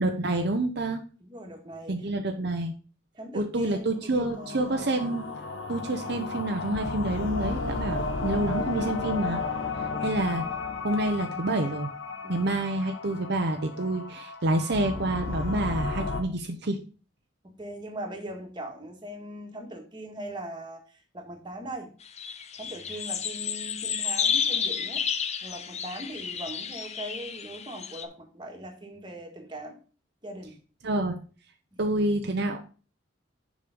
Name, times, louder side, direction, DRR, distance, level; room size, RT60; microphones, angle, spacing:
voice 1, 0.0-1.0 1.9-2.7 3.3-5.3 5.7-9.4 10.0-10.4 10.8-11.9 12.3-16.8 30.8-31.2 31.8-32.6, right 2 dB, 60° right, 4 dB, 0.8 m, -28 dB
voice 2, 1.2-2.1 3.1-4.7 9.8-10.3 12.2-12.6 17.4-21.9 22.6-25.0 25.4-29.8 30.2-30.6 31.7-31.8, right 1 dB, 25° right, 2 dB, 1.9 m, -40 dB
sound 1, 4.0-16.2, left 4 dB, 75° left, 1.0 m, -33 dB
sound 2, 22.1-28.0, left 7 dB, 35° left, 0.7 m, -31 dB
6.9 x 5.2 x 5.1 m, 0.36 s
head